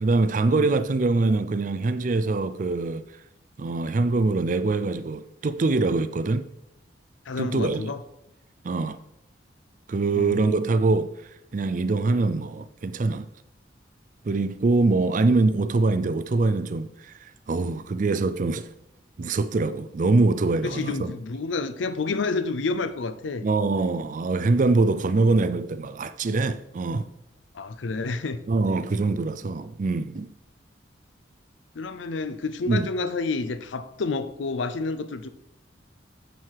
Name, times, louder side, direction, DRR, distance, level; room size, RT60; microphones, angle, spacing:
voice 1, 0.0-3.0 3.6-6.5 7.4-7.9 8.6-9.0 9.9-11.1 11.5-13.3 14.2-18.7 19.2-21.1 23.4-27.1 28.5-30.3 32.7-32.9, right 3 dB, 45° right, 0.4 m, -24 dB
voice 2, 7.3-8.0 10.1-10.4 20.6-23.5 27.5-28.4 31.8-35.3, left 3 dB, 85° left, 0.6 m, -29 dB
9.2 x 4.7 x 4.7 m
head